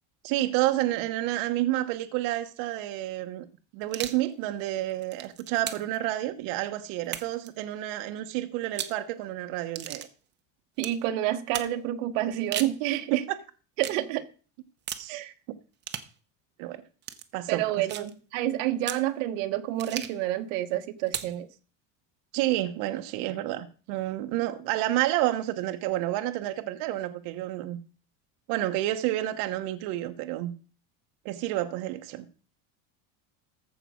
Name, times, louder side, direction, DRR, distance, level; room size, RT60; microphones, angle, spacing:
voice 1, 0.2-3.5 3.7-10.1 13.1-13.4 15.0-15.2 16.6-16.8 17.3-18.1 22.3-27.8 28.5-30.5 31.2-32.3, right 15 dB, 65° right, 1.0 m, -29 dB
sound 1, 3.8-4.2 4.9-6.0 7.0-7.5 8.6-9.0 9.7-10.1 10.8-11.0 11.5-11.7 12.3-12.8 13.8-14.0 14.9-15.1 15.8-16.1 17.0-17.2 17.9-18.1 18.8-19.1 19.8-20.2 21.1-21.4, right 10 dB, 30° right, 0.9 m, -36 dB
voice 2, 10.8-13.2 13.8-14.2 15.1-15.3 17.5-21.5, right 13 dB, 85° right, 1.2 m, -29 dB
14.5 x 4.9 x 6.2 m
cardioid pair, 150°, 37 cm